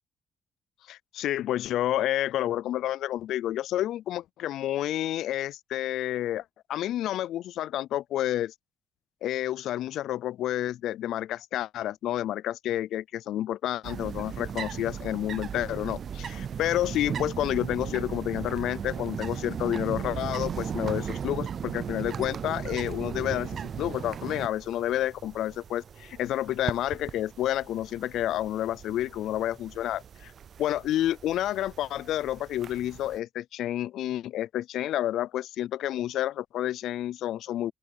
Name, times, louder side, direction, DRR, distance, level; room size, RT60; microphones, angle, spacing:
voice 1, 0.9-6.4 6.7-8.5 9.2-30.3 30.6-37.7, left 13 dB, 80° left, 0.3 m, -30 dB
sound 1, 13.8-33.2, right 7 dB, 55° right, 0.5 m, -37 dB
open air
cardioid pair, 90°, 0 cm